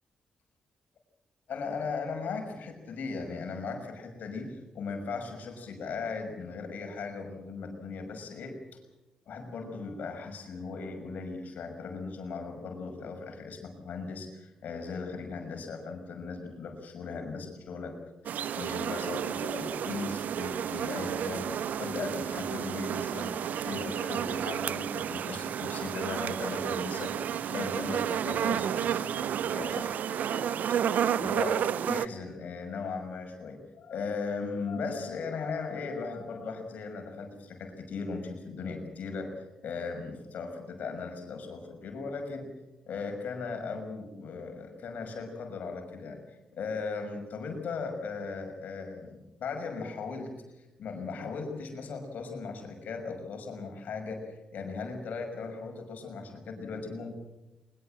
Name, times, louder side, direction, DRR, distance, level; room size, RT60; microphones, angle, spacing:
voice 1, 1.5-8.6 9.3-18.0 18.2-30.8 31.2-42.5 42.9-50.3 50.6-57.1, left 4 dB, 70° left, 5 dB, 6.2 m, -38 dB
sound 1, 18.3-32.1, right 9 dB, 70° right, 0.7 m, -31 dB
23.0 x 22.0 x 7.8 m, 1.0 s
hypercardioid pair, 45°, 3 cm